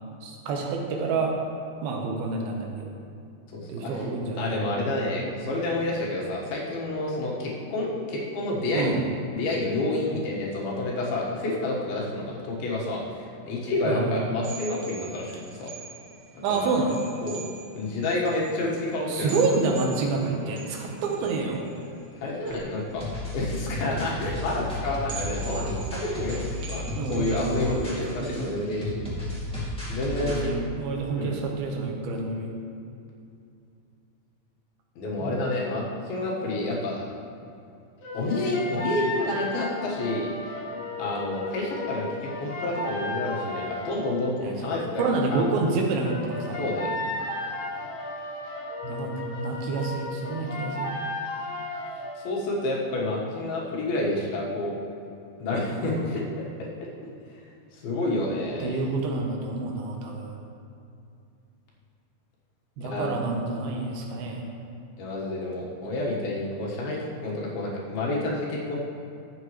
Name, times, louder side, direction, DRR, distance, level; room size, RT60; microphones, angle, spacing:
voice 1, 0.2-1.3 1.8-2.9 3.7-4.7 8.7-9.0 13.8-14.3 16.4-17.0 19.1-21.6 27.0-27.9 28.2-28.6 30.1-32.5 35.2-35.4 44.4-44.5 45.0-46.6 48.8-50.9 55.7-56.1 58.6-60.4 62.8-64.5, right 3 dB, 85° right, 1 dB, 2.9 m, -28 dB
voice 2, 3.5-4.0 4.4-9.0 9.3-15.7 16.5-16.6 17.2-17.4 17.7-19.4 20.4-20.5 22.2-23.0 23.3-29.0 29.9-30.5 31.2-31.4 35.0-37.1 38.1-40.3 41.0-42.1 42.4-45.0 45.3-45.5 46.6-46.9 52.2-54.8 55.4-56.5 57.7-58.8 62.8-63.1 65.0-68.8, left 2 dB, 85° left, -3 dB, 3.4 m, -29 dB
sound 1, 14.4-28.4, right 5 dB, 65° right, 1.0 m, -44 dB
sound 2, 23.0-30.5, equal, 5° left, 1.1 m, -33 dB
sound 3, 38.0-44.2 46.0-52.2, left 1 dB, 45° left, 2.7 m, -34 dB
12.5 x 8.2 x 3.1 m, 2.5 s
omnidirectional pair, 4.3 m